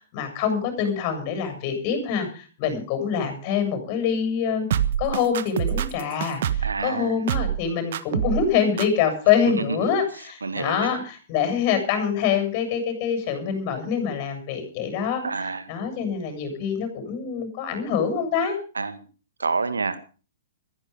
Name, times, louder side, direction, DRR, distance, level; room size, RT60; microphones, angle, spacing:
voice 1, 0.0-4.7 5.0-15.2 15.7-18.6, left 7 dB, 40° left, 7 dB, 7.3 m, -25 dB
sound 1, 4.7-6.8 7.3-7.6 7.9-8.5 8.8-8.9, right 10 dB, 60° right, 1.3 m, -25 dB
voice 2, 6.6-7.2 9.5-9.9 10.4-11.0 15.2-15.7 18.7-19.0 19.4-20.2, right 4 dB, 80° right, 11 dB, 1.9 m, -28 dB
16.0 x 14.5 x 5.3 m, 0.38 s
figure-of-eight pair, 115°, 0 cm